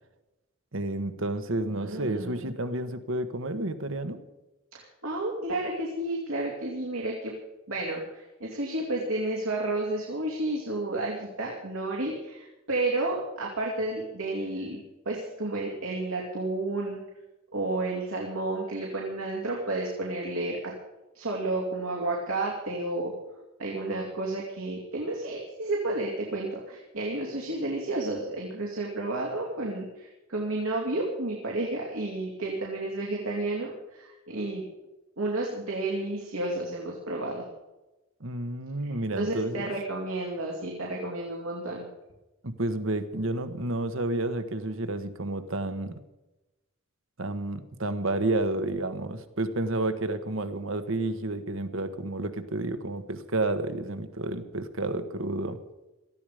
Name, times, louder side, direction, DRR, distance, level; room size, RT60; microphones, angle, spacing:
voice 1, 0.7-4.2 38.2-39.7 42.4-46.0 47.2-55.6, right 2 dB, 75° right, 10 dB, 1.4 m, -30 dB
voice 2, 1.7-2.4 4.7-7.3 7.7-17.0 17.5-20.7 21.1-23.1 23.6-34.6 35.2-37.5 39.2-41.9, right 2 dB, 90° right, -2 dB, 2.8 m, -31 dB
18.5 x 14.0 x 5.1 m, 1.0 s
head